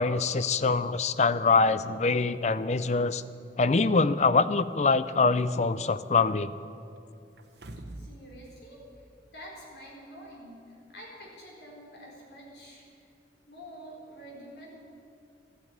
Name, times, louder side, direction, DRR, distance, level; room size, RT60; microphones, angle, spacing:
voice 1, 0.0-3.2 3.6-6.5, left 4 dB, 40° left, 15 dB, 0.4 m, -24 dB
sound 1, 7.4-8.2 8.6-8.7, right 1 dB, 75° right, 1.0 m, -43 dB
voice 2, 7.9-9.1 9.3-12.9 13.5-14.7, equal, 70° left, -2 dB, 4.2 m, -47 dB
14.0 x 9.2 x 9.4 m, 2.5 s
head